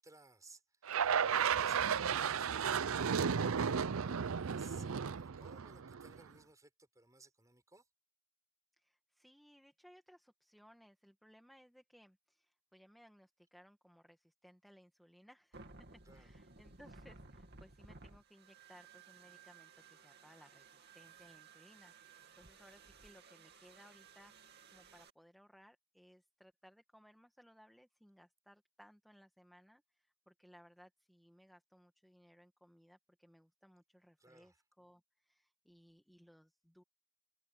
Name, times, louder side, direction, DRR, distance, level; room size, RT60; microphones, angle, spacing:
voice 1, 0.0-7.9 16.1-16.3 34.2-34.6, right 3 dB, 15° right, 6.4 m, -61 dB
sound 1, 0.9-6.2, right 7 dB, 70° right, 0.5 m, -34 dB
voice 2, 8.8-36.8, equal, ahead, 1.7 m, -63 dB
sound 2, 15.5-25.1, right 4 dB, 50° right, 2.6 m, -58 dB
head